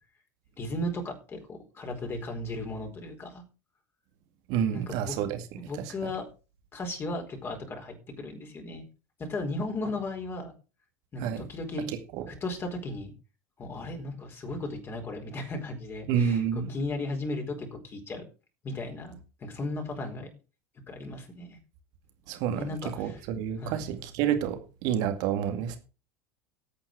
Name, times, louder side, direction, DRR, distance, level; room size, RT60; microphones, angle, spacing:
voice 1, 0.6-3.4 4.7-5.1 5.6-6.2 6.7-8.9 9.2-10.5 11.1-11.9 12.3-13.1 13.6-18.2 18.6-20.3 20.9-21.6 22.6-23.2 23.6-23.9, left 2 dB, 25° left, 4 dB, 4.5 m, -36 dB
voice 2, 4.5-5.4 5.8-6.1 11.2-11.4 16.1-16.7 22.3-22.6 23.0-25.8, right 8 dB, 50° right, 8 dB, 2.1 m, -29 dB
14.0 x 8.7 x 4.8 m, 0.32 s
figure-of-eight pair, 75°, 9 cm